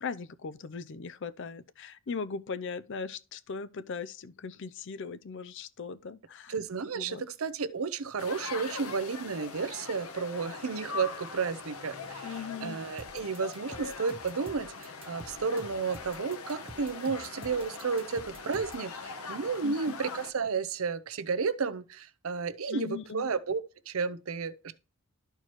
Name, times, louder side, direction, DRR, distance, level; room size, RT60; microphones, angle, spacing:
voice 1, 0.0-6.6 6.9-7.2 12.2-12.8 19.6-20.0 22.7-23.2, left 5 dB, 55° left, 0.5 m, -39 dB
voice 2, 6.5-12.3 12.6-24.7, right 5 dB, 70° right, 0.6 m, -32 dB
sound 1, 8.2-20.3, left 4 dB, 85° left, 1.0 m, -42 dB
sound 2, 13.0-18.9, right 2 dB, 25° right, 0.7 m, -48 dB
12.5 x 4.5 x 3.1 m
head